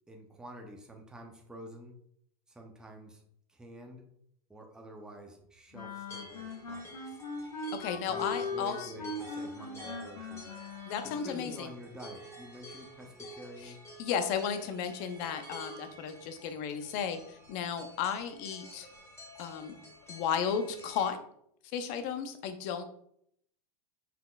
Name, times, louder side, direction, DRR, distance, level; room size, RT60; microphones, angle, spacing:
voice 1, 0.1-2.0 2.5-3.2 3.5-4.0 4.5-7.2 8.0-10.5 11.0-13.8, equal, 5° right, 1 dB, 0.7 m, -48 dB
sound 1, 5.7-11.4, left 3 dB, 90° left, 1.6 m, -40 dB
sound 2, 6.1-21.1, equal, 15° left, 1.6 m, -50 dB
voice 2, 7.8-8.9 10.9-11.7 13.6-13.7 14.0-18.9 19.4-19.8 20.1-21.2 21.7-22.8, left 7 dB, 45° left, 8 dB, 0.7 m, -34 dB
5.8 x 3.6 x 2.4 m, 0.69 s
supercardioid pair, 135°, 20 cm